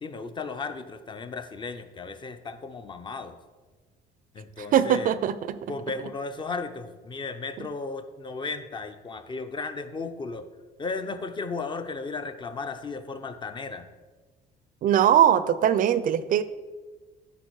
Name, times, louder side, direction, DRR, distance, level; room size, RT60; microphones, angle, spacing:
voice 1, 0.0-3.4 4.3-5.1 5.7-10.4 10.8-13.9, left 4 dB, 30° left, 9 dB, 0.6 m, -35 dB
voice 2, 4.7-5.4 14.8-16.4, right 10 dB, 55° right, 14 dB, 0.4 m, -20 dB
9.4 x 3.9 x 4.6 m, 1.3 s
cardioid pair, 110°, 17 cm